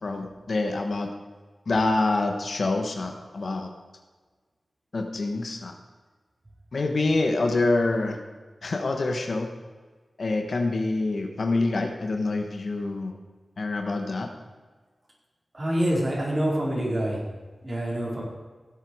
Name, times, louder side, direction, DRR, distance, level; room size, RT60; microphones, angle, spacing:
voice 1, 0.0-1.1 1.7-3.7 4.9-5.7 6.7-8.2 8.6-9.5 10.2-13.2 13.6-14.3, left 2 dB, 65° left, 4 dB, 1.4 m, -26 dB
voice 2, 15.5-17.2 17.6-18.2, right 1 dB, 40° right, -4 dB, 4.5 m, -26 dB
16.0 x 8.4 x 4.7 m, 1.4 s
wide cardioid pair, 65°, 0 cm